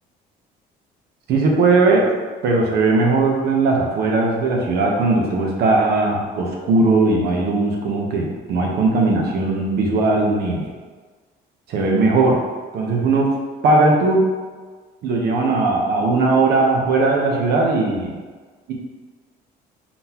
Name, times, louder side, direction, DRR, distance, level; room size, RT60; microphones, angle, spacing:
voice 1, 1.3-2.1 2.4-10.7 11.7-12.4 12.7-13.3 13.6-14.3 15.0-18.2 18.7-18.8, right 3 dB, 70° right, 0 dB, 0.9 m, -18 dB
4.1 x 3.8 x 2.9 m, 1.4 s
cardioid pair, 110°, 17 cm